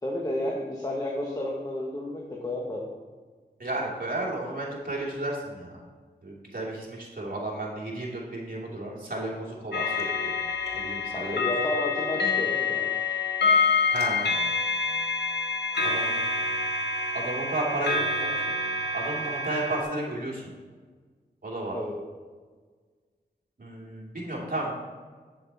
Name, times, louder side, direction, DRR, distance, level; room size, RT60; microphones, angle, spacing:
voice 1, 0.0-3.0 11.1-13.0 21.7-22.0, left 1 dB, 20° left, -1 dB, 1.3 m, -32 dB
voice 2, 3.6-5.7 6.2-10.3 10.7-11.5 13.9-14.3 15.8-16.2 17.1-18.6 18.9-20.4 21.4-21.8 23.6-24.8, right 1 dB, 55° right, -4 dB, 2.7 m, -33 dB
sound 1, 9.7-19.8, left 4 dB, 75° left, 1.4 m, -27 dB
8.2 x 7.7 x 4.1 m, 1.5 s
cardioid pair, 50°, 18 cm